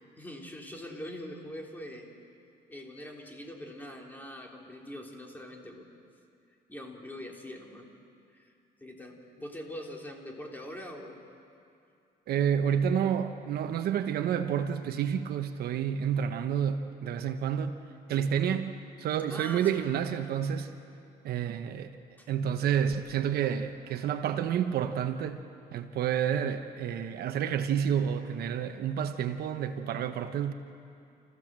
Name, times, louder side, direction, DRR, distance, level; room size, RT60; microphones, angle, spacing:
voice 1, 0.0-2.1 2.7-5.9 6.7-7.9 8.3-8.5 8.8-11.3 19.3-19.9 22.2-22.3, left 1 dB, 10° left, 0 dB, 3.4 m, -43 dB
voice 2, 12.3-17.8 18.1-20.7 21.2-22.0 22.3-25.4 25.7-30.5, right 8 dB, 65° right, 8 dB, 1.1 m, -29 dB
29.0 x 15.5 x 7.5 m, 2.6 s
cardioid pair, 110°, 17 cm